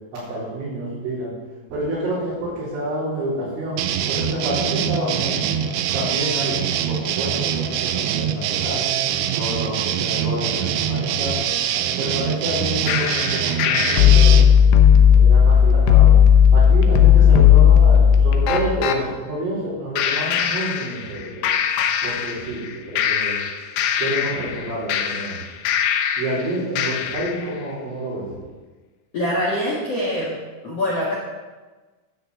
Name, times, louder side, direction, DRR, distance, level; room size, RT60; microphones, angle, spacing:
voice 1, 0.1-1.3 1.7-3.8 4.1-5.5 5.9-6.6 6.9-8.8 9.3-11.4 12.0-14.4 15.1-16.2 16.5-21.5 22.0-23.3 24.0-25.4 26.2-28.3, right 1 dB, 65° right, -12 dB, 6.7 m, -28 dB
sound 1, 3.8-14.5, right 9 dB, 80° right, 2.7 m, -24 dB
sound 2, 12.9-19.0 20.0-21.2 21.4-22.7 23.0-26.4 26.8-27.4, left 8 dB, 80° left, 2.5 m, -15 dB
voice 2, 29.1-30.4 30.6-31.1, left 1 dB, 50° left, -5 dB, 2.0 m, -24 dB
12.5 x 6.7 x 8.1 m, 1.3 s
omnidirectional pair, 6.0 m